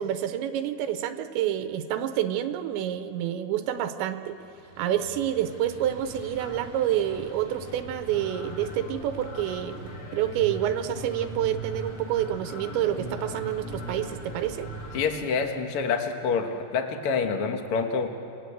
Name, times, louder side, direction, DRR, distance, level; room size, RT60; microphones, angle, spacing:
voice 1, 0.0-4.4 4.8-14.7, right 11 dB, 85° right, 9 dB, 3.2 m, -28 dB
sound 1, 4.3-15.1, right 1 dB, 30° left, 2.5 m, -40 dB
voice 2, 14.9-18.1, left 5 dB, 75° left, 4 dB, 1.3 m, -27 dB
28.5 x 19.5 x 8.2 m, 2.9 s
omnidirectional pair, 5.2 m